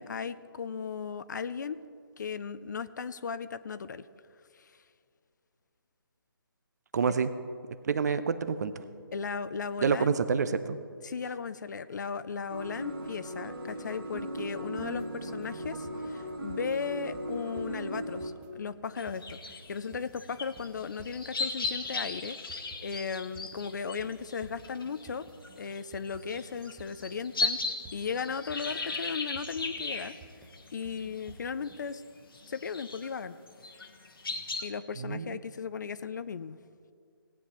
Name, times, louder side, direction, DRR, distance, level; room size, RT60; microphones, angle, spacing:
voice 1, 0.0-1.8 2.2-4.0 4.5-4.7 9.1-10.2 11.0-22.4 22.8-25.3 25.6-27.6 27.9-30.2 30.7-32.0 32.5-33.4 34.6-36.6, left 6 dB, 50° left, 14 dB, 0.5 m, -36 dB
voice 2, 6.9-7.3 7.8-8.8 9.8-10.8 35.0-35.3, right 6 dB, 45° right, 13 dB, 0.6 m, -28 dB
sound 1, 12.5-18.3, right 1 dB, 70° right, 1.8 m, -38 dB
sound 2, 14.2-31.8, right 5 dB, 10° right, 0.8 m, -53 dB
sound 3, 19.0-31.3 31.6-32.0 32.3-33.1 33.5-34.7, left 3 dB, 70° left, 1.3 m, -37 dB
18.0 x 9.5 x 3.0 m, 2.3 s
figure-of-eight pair, 150°, 12 cm